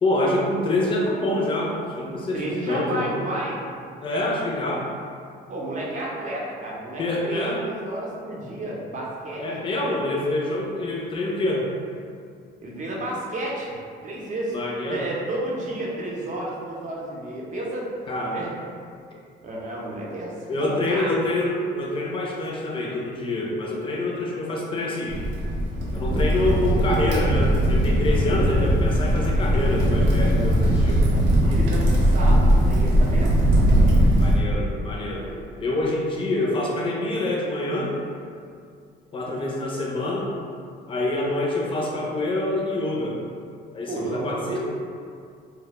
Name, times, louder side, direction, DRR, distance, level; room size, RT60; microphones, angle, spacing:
voice 1, 0.0-3.1 4.0-4.9 7.0-7.6 9.4-11.7 14.5-15.1 18.1-18.4 20.5-25.2 25.9-31.1 34.2-35.3 35.6-38.0 39.1-40.3 40.9-43.2 43.7-44.6, left 2 dB, 30° left, -3 dB, 0.4 m, -26 dB
voice 2, 2.3-3.6 5.5-9.4 12.6-13.7 14.0-14.5 14.9-17.9 18.3-18.5 19.4-20.3 20.6-21.2 31.4-33.5 35.1-35.5 43.9-44.6, right 1 dB, 40° right, -4 dB, 0.6 m, -31 dB
Crackle, 25.1-34.3, equal, 90° right, 0.5 m, -19 dB
2.1 x 2.0 x 2.9 m, 2.3 s
cardioid pair, 105°, 19 cm